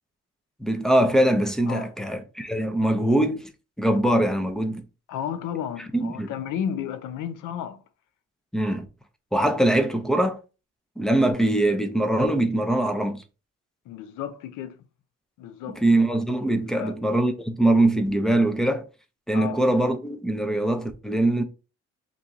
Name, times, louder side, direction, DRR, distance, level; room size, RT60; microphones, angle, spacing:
voice 1, 0.6-3.4 3.8-4.8 5.9-6.3 8.5-8.9 9.3-10.4 11.0-13.2 15.8-18.9 19.3-21.4, right 1 dB, ahead, 0.5 m, -22 dB
voice 2, 5.1-7.8 13.9-14.8 15.4-15.8 16.8-17.0 19.3-19.6, left 9 dB, 85° left, 0.5 m, -32 dB
3.0 x 2.6 x 3.5 m
cardioid pair, 90°, 30 cm